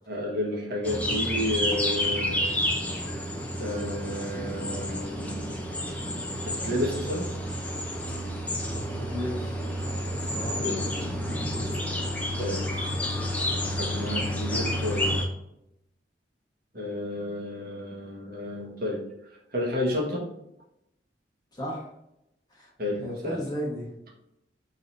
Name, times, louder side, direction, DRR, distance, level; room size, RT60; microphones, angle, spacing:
voice 1, 0.1-2.4 3.6-5.4 6.4-7.3 10.6-10.8 12.4-12.6 13.6-15.2 16.7-19.0 19.5-20.2 22.8-23.4, left 1 dB, 60° right, -3 dB, 1.4 m, -31 dB
sound 1, 0.8-15.2, equal, 10° left, 0.6 m, -30 dB
voice 2, 8.5-9.6 10.3-10.6 21.5-21.9 22.5-22.7 23.0-23.9, equal, 25° left, -3 dB, 1.3 m, -34 dB
4.4 x 3.9 x 2.6 m, 0.82 s
head